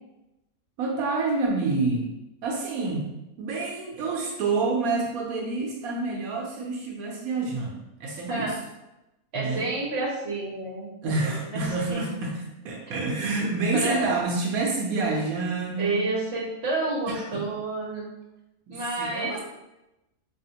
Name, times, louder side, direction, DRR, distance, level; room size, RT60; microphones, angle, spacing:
voice 1, 0.8-2.1 2.4-3.1 3.4-8.5 9.3-9.7 11.0-12.3 12.6-16.0 17.1-17.4 18.7-19.4, right 3 dB, 85° right, -1 dB, 1.1 m, -28 dB
voice 2, 9.3-12.0 12.9-13.0 13.7-14.1 15.8-18.1 18.7-19.4, right 2 dB, 50° right, -3 dB, 1.2 m, -30 dB
4.0 x 3.0 x 2.7 m, 0.93 s
omnidirectional pair, 1.5 m